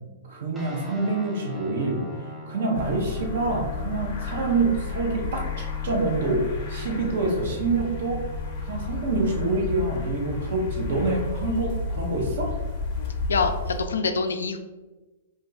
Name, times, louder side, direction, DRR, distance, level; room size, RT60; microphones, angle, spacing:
voice 1, 0.3-8.2 8.6-12.5, right 3 dB, 65° right, 1 dB, 0.8 m, -26 dB
sound 1, 0.5-11.7, equal, 5° right, 0.5 m, -42 dB
sound 2, 2.7-13.8, left 4 dB, 45° left, 0.7 m, -32 dB
voice 2, 13.3-14.6, left 4 dB, 90° left, 6 dB, 0.4 m, -25 dB
2.5 x 2.3 x 3.9 m, 1.2 s
hypercardioid pair, 135°, 0 cm